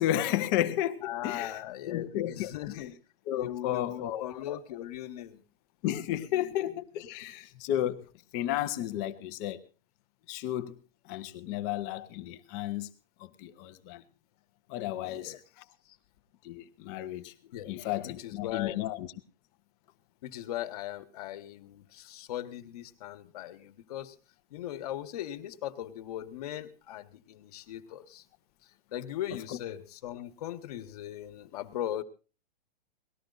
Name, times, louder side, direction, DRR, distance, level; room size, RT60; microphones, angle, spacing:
voice 1, 0.0-1.6 1.9-2.9 3.3-4.6 5.8-8.1 8.3-9.6 10.3-10.7 11.1-12.9 13.2-14.0 14.7-15.3 16.4-17.3 17.7-19.1 29.5-29.6, left 12 dB, 20° left, 10 dB, 0.6 m, -33 dB
voice 2, 1.0-2.9 3.3-5.4 6.3-6.5 15.0-15.4 17.5-17.7 18.0-18.8 20.2-24.1 24.5-28.2 28.9-32.0, left 12 dB, 40° left, 12 dB, 1.3 m, -39 dB
19.0 x 13.0 x 3.9 m, 0.35 s
hypercardioid pair, 175°, 29 cm